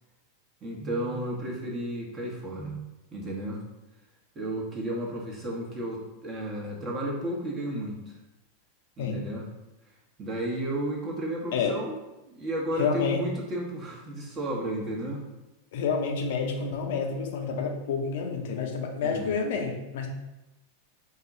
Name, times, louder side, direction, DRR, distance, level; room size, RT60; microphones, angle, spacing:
voice 1, 0.6-3.6 4.3-8.0 9.0-9.5 10.2-11.9 12.3-15.3 19.0-19.3, right 1 dB, 25° right, -2 dB, 1.1 m, -33 dB
voice 2, 12.8-13.3 15.7-20.1, left 5 dB, 55° left, 2 dB, 0.7 m, -29 dB
4.8 x 2.3 x 3.9 m, 0.99 s
figure-of-eight pair, 90°, 0 cm